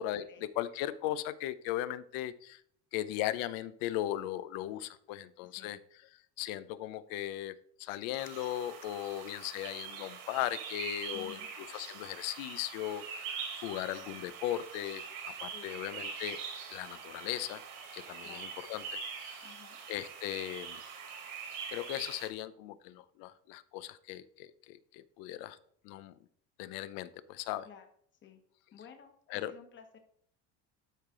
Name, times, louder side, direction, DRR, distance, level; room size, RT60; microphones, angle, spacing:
voice 1, 0.0-2.6 2.9-5.8 6.4-7.5 7.8-16.4 16.7-17.6 17.9-19.5 19.9-20.8 21.7-25.6 25.8-26.1 26.6-27.7 29.3-29.5, left 13 dB, 80° left, 15 dB, 0.7 m, -38 dB
sound 1, 8.2-22.3, right 6 dB, 65° right, 2.1 m, -43 dB
voice 2, 11.1-11.5 15.5-15.8 18.2-18.5 19.4-19.8 27.6-27.9 28.2-28.4 28.7-30.0, left 8 dB, 35° left, 5 dB, 1.4 m, -53 dB
12.0 x 5.0 x 3.8 m, 0.63 s
cardioid pair, 145°, 34 cm